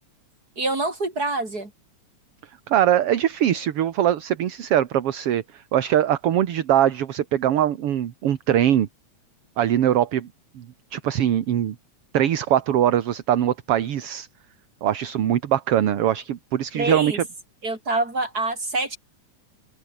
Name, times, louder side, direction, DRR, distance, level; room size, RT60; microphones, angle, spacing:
voice 1, 0.6-1.7 16.7-17.2 17.6-19.0, right 2 dB, 30° right, 6.6 m, -26 dB
voice 2, 2.7-8.9 9.6-10.3 10.6-10.7 10.9-11.8 12.1-14.3 14.8-17.2, right 11 dB, 60° right, 2.1 m, -22 dB
open air
omnidirectional pair, 3.4 m